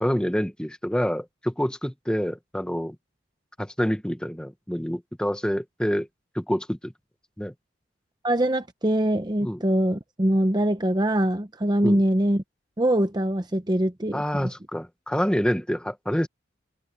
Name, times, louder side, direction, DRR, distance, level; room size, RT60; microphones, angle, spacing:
voice 1, 0.0-2.9 3.6-6.1 6.3-6.9 7.4-7.5 9.4-9.6 11.8-12.0 14.1-16.3, equal, 5° left, 1.1 m, -27 dB
voice 2, 8.2-12.4 12.8-14.5, right 1 dB, 20° right, 0.8 m, -23 dB
head